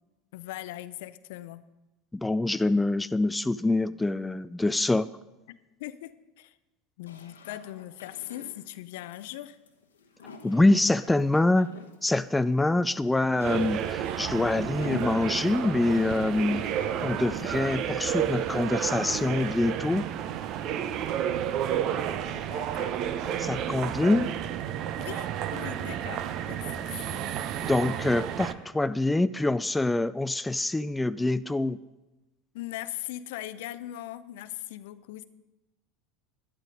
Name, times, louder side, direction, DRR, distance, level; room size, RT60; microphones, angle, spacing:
voice 1, 0.3-1.6 5.5-6.1 6.4-6.6 7.0-9.6 22.2-23.0 25.0-27.3 32.5-35.3, left 14 dB, 65° left, 15 dB, 0.5 m, -40 dB
voice 2, 2.1-5.1 10.4-11.7 12.0-16.6 17.0-20.1 23.4-24.3 27.6-31.8, left 2 dB, 10° left, 14 dB, 0.3 m, -25 dB
sound 1, 7.1-19.2, left 3 dB, 80° left, 1.1 m, -47 dB
sound 2, 13.4-28.5, right 10 dB, 50° right, 0.7 m, -31 dB
12.0 x 10.5 x 5.1 m, 1.1 s
figure-of-eight pair, 75°, 0 cm